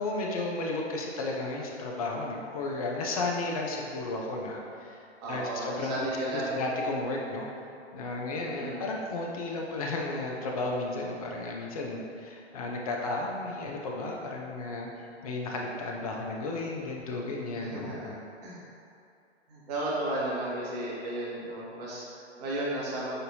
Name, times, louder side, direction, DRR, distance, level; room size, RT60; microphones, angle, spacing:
voice 1, 0.0-5.0 5.3-7.5 7.9-14.9 15.2-18.1, left 2 dB, 35° left, -1 dB, 0.5 m, -33 dB
voice 2, 5.2-6.6 8.4-8.8 17.6-18.1 18.4-18.6 19.5-23.1, right 1 dB, 35° right, -6 dB, 1.2 m, -34 dB
6.5 x 2.6 x 2.7 m, 2.5 s
figure-of-eight pair, 120°, 34 cm